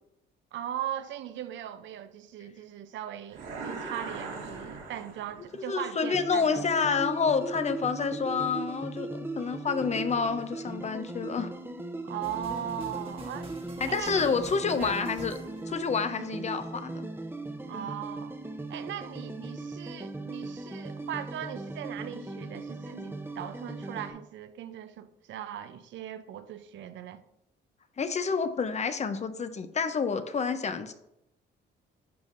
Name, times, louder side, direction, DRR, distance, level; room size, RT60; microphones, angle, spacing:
voice 1, 0.5-6.7 12.0-13.5 13.9-14.4 14.8-15.0 17.7-18.4 18.7-27.2, right 10 dB, 70° right, 0.5 m, -39 dB
sound 1, 3.3-5.6, right 4 dB, 85° right, 1.9 m, -40 dB
voice 2, 5.7-11.5 13.8-15.4 15.7-17.1 28.0-30.9, left 5 dB, 35° left, 0.6 m, -29 dB
sound 2, 6.0-24.1, right 2 dB, 10° right, 0.7 m, -38 dB
sound 3, 12.2-16.4, right 3 dB, 30° right, 1.2 m, -46 dB
10.5 x 5.1 x 2.6 m
cardioid pair, 90°, 20 cm